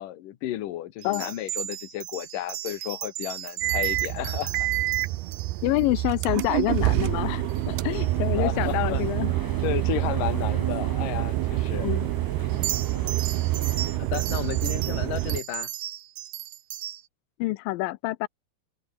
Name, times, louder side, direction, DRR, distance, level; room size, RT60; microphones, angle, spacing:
voice 1, 0.0-4.7 8.4-9.1 9.6-11.9 14.0-15.7, left 13 dB, 65° left, 2.6 m, -33 dB
sound 1, 1.0-7.0 7.5-7.7 7.9-8.1 12.5-17.0, right 13 dB, 75° right, 1.6 m, -36 dB
sound 2, 3.6-15.4, right 18 dB, 90° right, 2.8 m, -27 dB
voice 2, 5.6-9.3 11.8-12.1 17.4-18.3, left 19 dB, 80° left, 2.1 m, -27 dB
sound 3, 6.9-14.0, left 1 dB, 5° left, 4.0 m, -42 dB
omnidirectional pair, 4.6 m